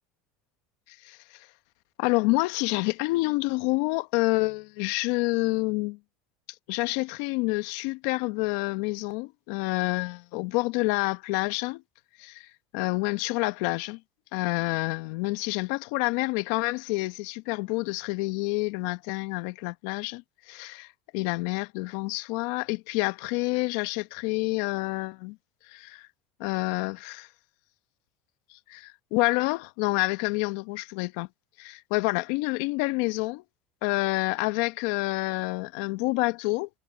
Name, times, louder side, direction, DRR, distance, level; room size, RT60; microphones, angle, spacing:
voice 1, 0.9-1.5 2.0-6.0 6.7-11.8 12.2-12.5 12.7-14.0 14.3-20.9 21.1-25.4 25.7-26.1 26.4-27.3 28.5-31.3 31.6-33.4 33.8-36.7, left 24 dB, 70° left, 1.3 m, -28 dB
supercardioid pair, 105°, 0 cm